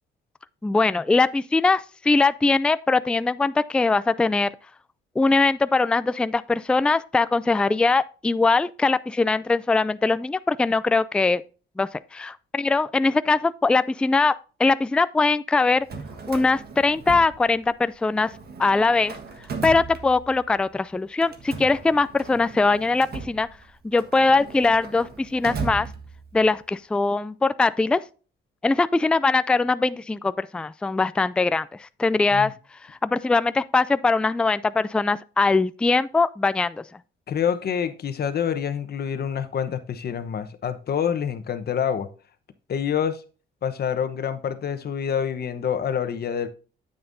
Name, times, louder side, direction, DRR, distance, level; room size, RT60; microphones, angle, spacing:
voice 1, 0.6-4.5 5.2-11.4 11.8-14.3 14.6-15.9 16.3-18.3 18.6-19.2 19.6-23.5 23.8-25.9 26.3-28.0 28.6-32.5 33.0-36.8, left 3 dB, 5° left, 0.3 m, -21 dB
Drawer open or close, 15.7-17.9 18.2-20.6 21.2-26.5, right 4 dB, 50° right, 1.5 m, -37 dB
voice 2, 37.3-42.1 42.7-43.2 43.6-46.5, left 8 dB, 50° left, 1.0 m, -27 dB
9.1 x 7.9 x 2.6 m
cardioid pair, 90°, 20 cm